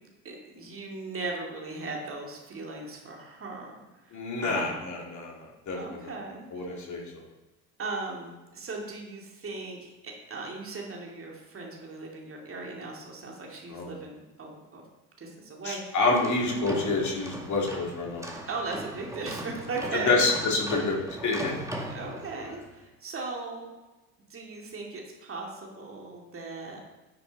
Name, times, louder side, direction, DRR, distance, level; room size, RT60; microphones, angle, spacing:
voice 1, 0.2-3.8 4.0-4.8 5.8-6.8 7.8-14.8 15.2-16.0 18.5-20.2 21.8-23.7 24.3-26.8, right 3 dB, 30° right, 0 dB, 2.5 m, -38 dB
voice 2, 4.1-6.1 6.5-7.0 13.7-13.9 15.6-18.2 19.9-21.0 21.2-21.5, left 3 dB, 40° left, -2 dB, 2.8 m, -28 dB
sound 1, 16.0-22.7, right 1 dB, 5° right, 1.6 m, -39 dB
10.0 x 6.8 x 4.1 m, 1.1 s
figure-of-eight pair, 60°, 45 cm